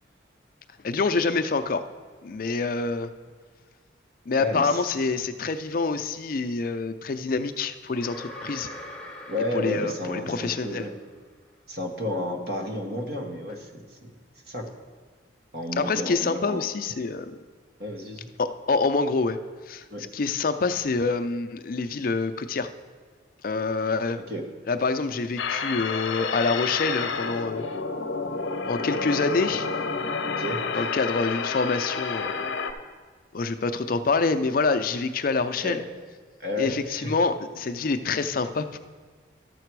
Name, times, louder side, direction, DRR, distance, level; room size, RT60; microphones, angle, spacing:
voice 1, 0.8-1.8 2.2-3.1 4.3-8.7 9.5-10.8 15.8-17.4 18.4-19.4 19.7-19.8 20.1-22.7 23.4-24.2 24.7-27.6 28.7-29.7 30.7-32.4 33.3-35.8 36.6-38.8, left 4 dB, 45° left, 10 dB, 0.4 m, -26 dB
voice 2, 4.4-4.8 9.3-10.9 11.7-14.1 14.5-14.7 15.5-16.7 17.8-18.3 19.9-20.0 24.3-24.4 30.3-30.9 35.6-35.8 36.4-37.1, left 1 dB, 55° right, 2 dB, 1.2 m, -31 dB
sound 1, 7.9-11.0, left 1 dB, 5° left, 0.8 m, -43 dB
sound 2, 25.4-32.7, left 4 dB, 85° left, 0.7 m, -30 dB
12.5 x 6.7 x 4.6 m, 1.5 s
head